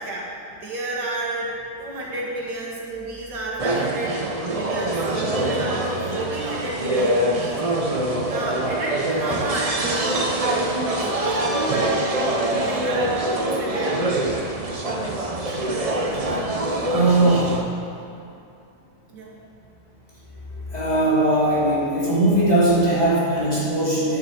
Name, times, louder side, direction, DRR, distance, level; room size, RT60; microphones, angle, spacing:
voice 1, 0.0-4.2 4.5-5.9 6.2-7.6 8.3-10.3 11.0-11.9 12.6-14.0 19.1-19.4, right 2 dB, 80° right, -3 dB, 2.5 m, -31 dB
sound 1, 3.6-17.6, right 1 dB, 35° right, 0.5 m, -24 dB
voice 2, 15.5-15.8 16.1-16.4 16.7-18.1 20.5-24.2, right 1 dB, 25° left, -9 dB, 3.0 m, -21 dB
9.2 x 7.8 x 6.9 m, 2.6 s
omnidirectional pair, 1.8 m